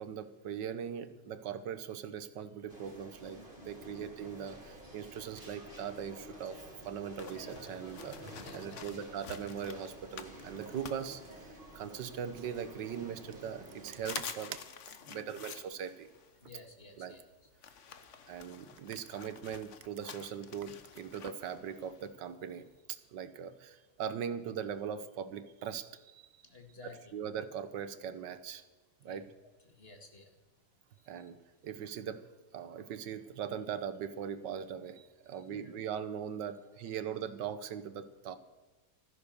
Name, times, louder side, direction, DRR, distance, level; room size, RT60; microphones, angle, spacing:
voice 1, 0.0-6.6 6.8-14.6 15.1-16.1 17.0-17.2 18.3-26.4 26.8-28.6 29.0-29.3 31.1-32.2 32.5-38.4, right 8 dB, 85° right, 12 dB, 1.6 m, -40 dB
sound 1, 2.7-14.1, right 1 dB, 30° right, 4.0 m, -50 dB
sound 2, 7.2-11.8 12.3-13.2 13.6-13.7 13.9-22.8, left 7 dB, 50° left, 1.2 m, -50 dB
voice 2, 8.4-8.9 15.0-15.3 16.4-17.2 26.4-27.1 29.0-29.2 29.8-30.3 31.1-31.2 35.5-35.7, left 3 dB, 35° left, 4 dB, 2.1 m, -53 dB
sound 3, 10.4-21.5, right 9 dB, 60° right, 1.1 m, -53 dB
15.5 x 13.5 x 6.6 m, 1.1 s
omnidirectional pair, 1.9 m